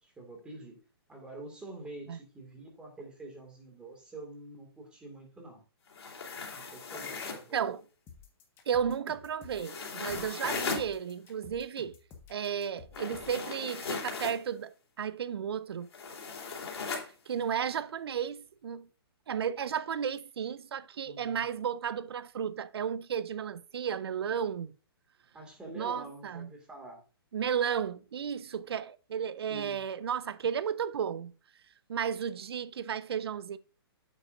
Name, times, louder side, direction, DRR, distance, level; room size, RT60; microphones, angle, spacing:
voice 1, 0.0-0.8 1.1-5.6 6.5-7.8 21.0-21.5 25.3-27.0 29.5-29.8, right 2 dB, 5° right, 2.2 m, -47 dB
sound 1, 5.9-7.5 9.5-10.9 12.9-14.4 15.9-17.1, left 4 dB, 75° left, 3.5 m, -37 dB
sound 2, 8.1-13.4, left 5 dB, 15° left, 1.4 m, -52 dB
voice 2, 8.7-12.0 12.3-15.9 17.0-18.9 19.3-24.7 25.8-26.5 27.3-31.3 31.9-33.6, right 8 dB, 70° right, 0.7 m, -33 dB
8.7 x 8.4 x 2.6 m
hypercardioid pair, 160°, 13 cm